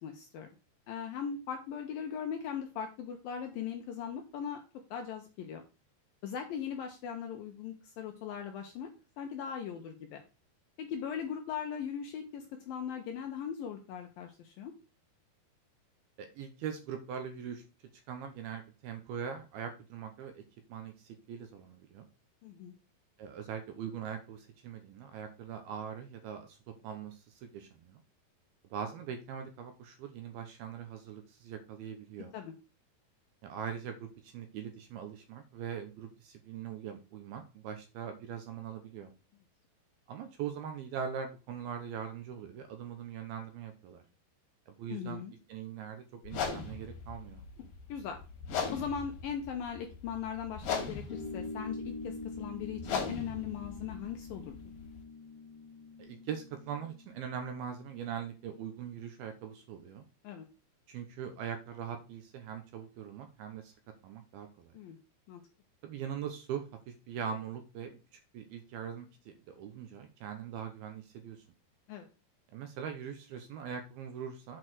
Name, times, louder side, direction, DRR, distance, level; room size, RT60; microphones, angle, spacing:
voice 1, 0.0-0.5 0.9-4.6 4.9-5.6 6.2-8.9 9.2-10.2 10.8-14.7 22.4-22.7 32.3-32.5 44.9-45.3 47.6-48.2 48.7-54.6 60.2-60.5 64.7-65.0 65.3-65.4 71.9-72.1, left 8 dB, 75° left, 4 dB, 2.2 m, -39 dB
voice 2, 16.2-17.6 18.1-20.4 20.7-22.1 23.2-28.0 28.7-32.3 33.4-39.1 40.1-44.0 44.7-45.2 45.5-47.4 56.0-60.0 60.9-63.7 64.0-64.7 65.8-71.4 72.5-74.6, right 8 dB, 75° right, 7 dB, 2.4 m, -41 dB
sound 1, 46.3-55.0, left 5 dB, 60° left, 3.3 m, -39 dB
sound 2, 51.1-58.0, left 3 dB, 10° left, 2.6 m, -45 dB
7.8 x 4.6 x 6.2 m, 0.31 s
omnidirectional pair, 5.1 m